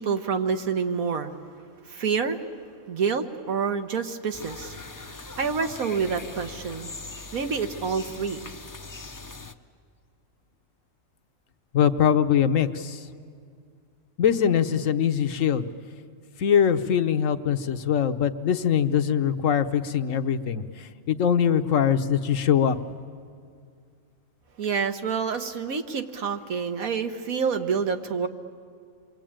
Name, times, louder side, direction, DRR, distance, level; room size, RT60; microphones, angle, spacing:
voice 1, 0.0-1.3 1.9-2.4 2.9-4.7 5.0-6.9 7.3-8.4 24.6-28.3, right 6 dB, 85° right, 7 dB, 1.7 m, -28 dB
sound 1, 4.3-9.5, left 3 dB, 20° left, 0.5 m, -41 dB
voice 2, 11.7-13.0 14.2-15.7 16.4-22.8, left 8 dB, 70° left, 9 dB, 1.3 m, -22 dB
28.5 x 23.0 x 8.9 m, 2.2 s
omnidirectional pair, 1.4 m